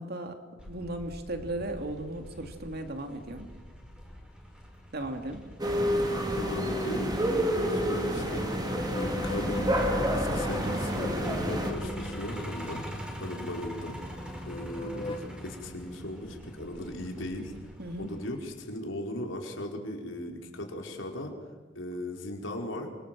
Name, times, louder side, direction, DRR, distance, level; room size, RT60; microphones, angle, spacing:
voice 1, 0.0-3.5 4.9-5.4 17.8-18.1, right 1 dB, 55° right, 5 dB, 3.1 m, -36 dB
Truck, 0.6-18.4, equal, 5° right, 5.2 m, -44 dB
sound 1, 5.6-11.7, equal, 20° right, 3.7 m, -29 dB
voice 2, 6.3-8.5 9.0-12.8 13.2-14.0 14.4-17.5 18.0-21.3 21.7-22.9, left 1 dB, 85° left, 2 dB, 5.0 m, -38 dB
sound 2, 8.6-13.6 14.1-15.2, left 2 dB, 25° left, 1.9 m, -37 dB
28.5 x 25.5 x 7.9 m, 1.3 s
head